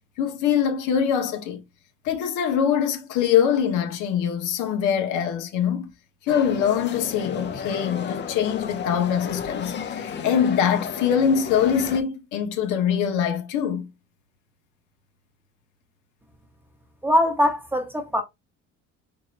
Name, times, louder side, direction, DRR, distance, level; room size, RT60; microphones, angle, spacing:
voice 1, 0.2-1.6 2.0-5.9 6.3-13.9, left 8 dB, 85° left, 1.1 m, -23 dB
sound 1, 6.3-12.0, left 6 dB, 35° left, 0.6 m, -33 dB
voice 2, 17.0-18.2, left 1 dB, 5° right, 0.8 m, -21 dB
4.5 x 3.8 x 2.5 m
cardioid pair, 145°, 30 cm